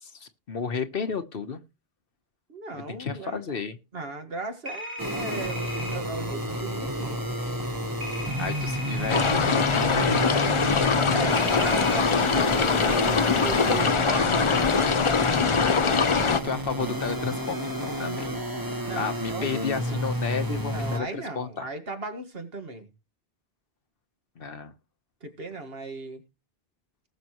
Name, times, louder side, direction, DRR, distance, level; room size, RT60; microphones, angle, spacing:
voice 1, 0.0-1.6 2.7-3.8 8.4-10.8 15.6-16.2 16.4-18.3 18.9-21.1 21.3-21.7 24.4-24.7, left 5 dB, 65° left, 1.3 m, -32 dB
voice 2, 2.5-3.6 3.9-7.2 11.1-15.1 15.4-15.9 18.8-20.1 20.7-22.9 25.2-26.2, right 3 dB, 70° right, 2.0 m, -37 dB
sound 1, 4.7-6.0 8.0-9.3 11.4-12.0, left 1 dB, 40° right, 1.9 m, -37 dB
sound 2, 5.0-21.0, right 1 dB, 20° right, 1.4 m, -31 dB
sound 3, 9.1-16.4, left 5 dB, 35° left, 0.6 m, -23 dB
19.0 x 6.8 x 3.0 m
omnidirectional pair, 1.0 m